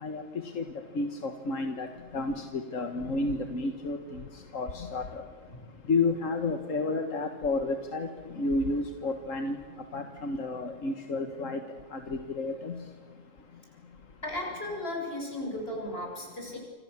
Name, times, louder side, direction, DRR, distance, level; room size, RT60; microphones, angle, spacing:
voice 1, 1.0-1.9 2.1-4.2 4.5-5.2 5.9-9.6 9.9-11.6 11.9-12.8, left 3 dB, 85° left, 6 dB, 1.9 m, -31 dB
voice 2, 14.2-16.6, left 1 dB, 50° left, 0 dB, 8.1 m, -35 dB
29.0 x 26.5 x 7.3 m, 1.5 s
omnidirectional pair, 1.3 m